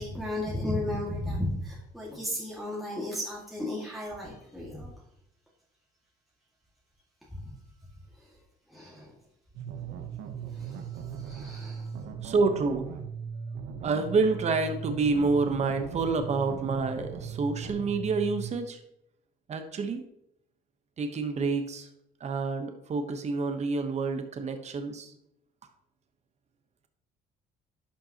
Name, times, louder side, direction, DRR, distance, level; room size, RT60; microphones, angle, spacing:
voice 1, 0.0-4.9 7.3-7.5 8.2-8.3 8.7-9.1 10.5-11.9, left 1 dB, ahead, -6 dB, 2.0 m, -34 dB
sound 1, 9.5-18.5, right 6 dB, 80° right, 1.0 m, -38 dB
voice 2, 12.2-12.9 13.8-18.8 19.5-20.0 21.0-21.9 22.2-25.1, right 4 dB, 40° right, 7 dB, 1.1 m, -28 dB
11.5 x 5.6 x 2.9 m, 0.77 s
cardioid pair, 110°, 17 cm